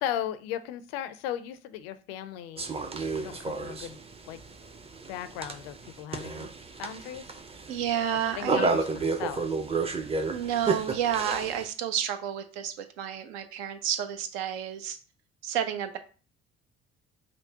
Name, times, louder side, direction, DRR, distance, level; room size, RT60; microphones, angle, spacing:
voice 1, 0.0-2.7 3.1-4.4 5.1-6.5 6.8-7.4 8.3-9.6, left 11 dB, 75° left, 12 dB, 0.5 m, -37 dB
sound 1, 2.6-11.7, right 4 dB, 20° right, 0.5 m, -32 dB
voice 2, 7.7-8.8 10.3-15.0 15.4-16.0, right 9 dB, 75° right, 8 dB, 0.6 m, -30 dB
5.1 x 2.0 x 2.8 m, 0.37 s
hypercardioid pair, 50°, 30 cm